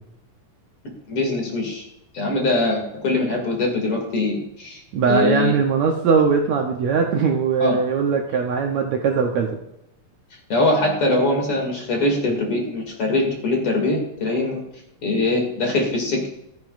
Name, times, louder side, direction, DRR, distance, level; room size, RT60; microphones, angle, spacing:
voice 1, 1.1-1.8 2.1-4.8 5.1-5.5 7.6-7.8 10.5-14.6 15.0-16.3, left 2 dB, 45° left, 0 dB, 3.4 m, -22 dB
voice 2, 4.9-9.6, right 5 dB, 65° right, 1 dB, 2.0 m, -20 dB
15.5 x 14.0 x 2.6 m, 0.82 s
omnidirectional pair, 3.8 m